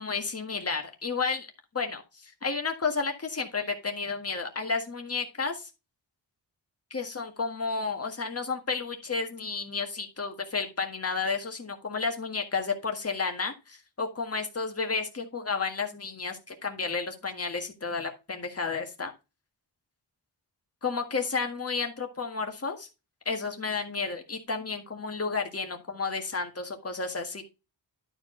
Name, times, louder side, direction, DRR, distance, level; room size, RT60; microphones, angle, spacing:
voice 1, 0.0-1.5 1.7-5.7 6.9-19.1 20.8-22.9 23.2-27.4, left 4 dB, 35° left, 4 dB, 1.7 m, -32 dB
12.0 x 4.5 x 3.8 m, 0.28 s
wide cardioid pair, 120°, 44 cm